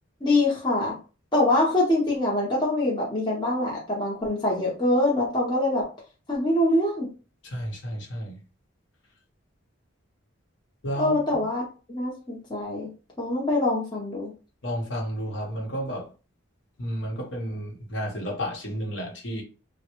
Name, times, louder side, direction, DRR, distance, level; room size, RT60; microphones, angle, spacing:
voice 1, 0.2-1.0 1.3-5.9 6.3-7.1 11.0-11.6 11.9-12.9 13.2-14.3, left 1 dB, 20° left, -4 dB, 0.8 m, -24 dB
voice 2, 7.4-8.4 10.8-11.2 14.6-16.1 16.8-19.4, equal, 60° left, -1 dB, 1.0 m, -32 dB
3.2 x 2.1 x 3.0 m, 0.34 s
head